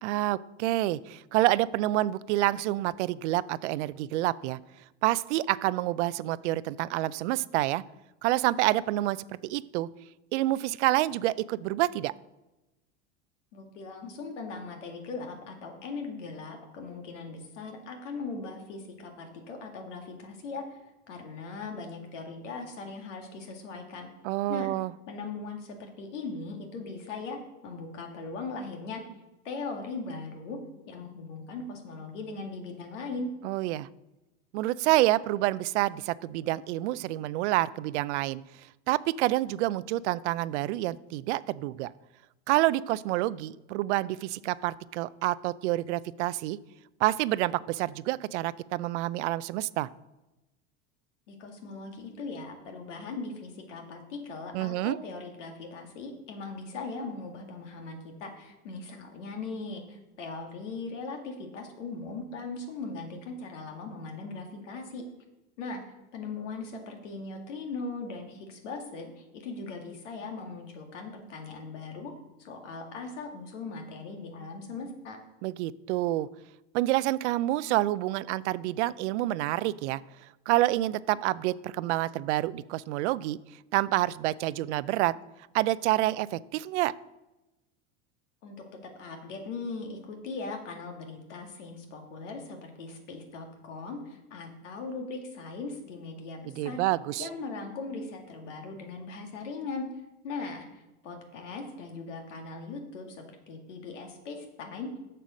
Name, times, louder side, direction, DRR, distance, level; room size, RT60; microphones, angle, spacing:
voice 1, 0.0-4.6 5.0-7.8 8.2-9.9 10.3-12.1 24.2-24.9 33.4-33.9 34.5-38.4 38.9-41.9 42.5-46.6 47.0-49.9 54.5-55.0 75.4-76.3 76.7-83.4 83.7-85.1 85.5-86.9 96.5-97.3, right 16 dB, 70° right, 18 dB, 0.5 m, -28 dB
voice 2, 13.5-20.8 21.1-24.1 24.5-24.7 25.1-29.0 29.4-30.6 30.9-33.3 51.3-65.0 65.6-65.8 66.1-72.1 72.4-75.2 88.4-88.6 88.8-96.8 97.2-99.9 100.2-104.9, left 3 dB, 80° left, 3 dB, 2.1 m, -39 dB
7.5 x 6.8 x 6.3 m, 1.0 s
hypercardioid pair, 95°, 36 cm